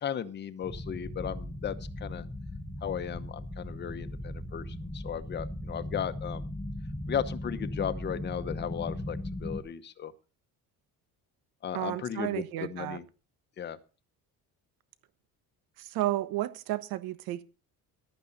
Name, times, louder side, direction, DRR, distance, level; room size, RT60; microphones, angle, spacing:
voice 1, 0.0-2.2 2.8-6.5 7.1-10.1 11.6-13.0 13.6-13.8, left 8 dB, 30° left, 1.0 m, -36 dB
sound 1, 0.6-9.6, left 1 dB, 10° left, 1.1 m, -38 dB
voice 2, 11.7-13.0 15.8-17.4, right 15 dB, 85° right, 1.3 m, -32 dB
14.5 x 12.0 x 4.1 m
cardioid pair, 170°, 35 cm